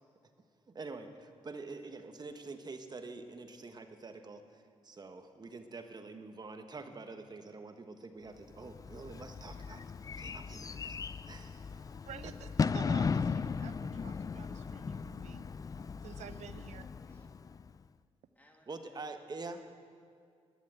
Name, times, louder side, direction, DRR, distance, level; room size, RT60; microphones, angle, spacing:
voice 1, 0.7-11.9 12.2-12.5 18.7-19.7, right 3 dB, 35° right, 7 dB, 1.1 m, -46 dB
Bird / Fireworks, 8.6-17.8, left 5 dB, 30° left, 0.3 m, -37 dB
voice 2, 12.1-15.4 16.0-16.8, right 9 dB, 80° right, 13 dB, 0.6 m, -50 dB
voice 3, 15.7-16.3 16.5-17.3 18.4-19.1, left 1 dB, 15° left, 1 dB, 2.2 m, -66 dB
11.5 x 10.5 x 8.8 m, 2.3 s
cardioid pair, 90°, 12 cm